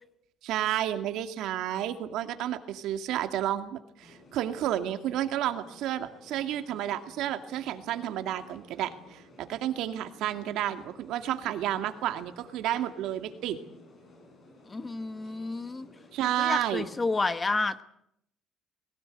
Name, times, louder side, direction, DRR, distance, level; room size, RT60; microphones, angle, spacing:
voice 1, 0.4-13.6 16.1-16.8, right 12 dB, 70° right, 8 dB, 2.2 m, -31 dB
sound 1, 4.0-17.2, left 2 dB, 35° left, 6.9 m, -55 dB
voice 2, 14.7-15.9 16.4-17.8, left 3 dB, 20° left, 12 dB, 1.1 m, -30 dB
21.0 x 17.5 x 9.1 m, 0.77 s
cardioid pair, 145°, 0 cm